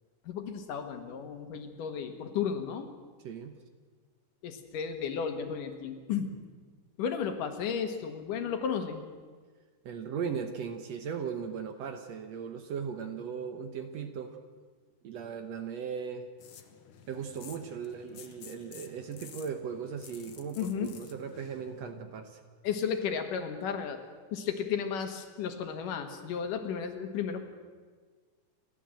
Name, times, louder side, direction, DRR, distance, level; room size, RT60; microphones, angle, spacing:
voice 1, 0.3-2.9 4.4-6.3 7.0-9.0 20.6-20.9 22.6-24.0 24.3-27.4, left 7 dB, 75° left, 7 dB, 3.2 m, -33 dB
voice 2, 3.2-3.6 9.8-14.4 15.0-16.3 17.1-22.4, right 6 dB, 65° right, 7 dB, 1.9 m, -38 dB
sound 1, 16.4-21.8, left 8 dB, 60° left, 1.4 m, -52 dB
29.0 x 12.5 x 7.7 m, 1.5 s
omnidirectional pair, 3.8 m